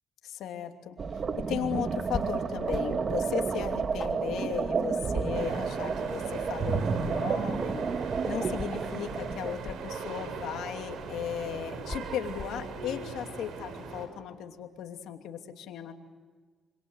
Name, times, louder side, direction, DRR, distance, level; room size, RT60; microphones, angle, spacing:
voice 1, 0.2-1.0 1.5-7.8 8.2-15.9, left 9 dB, 85° left, 4 dB, 2.8 m, -36 dB
sound 1, 1.0-9.5, right 5 dB, 45° right, 1.7 m, -31 dB
sound 2, 2.1-2.3 2.7-3.1 3.4-3.5 4.0-5.3 5.6-6.4 6.8-7.8 8.6-10.2 11.0-11.2 11.8-12.6, left 4 dB, 35° left, 3.7 m, -41 dB
sound 3, 5.3-14.1, right 5 dB, 75° right, 5.7 m, -39 dB
27.0 x 26.0 x 8.1 m, 1.5 s
cardioid pair, 90°, 0 cm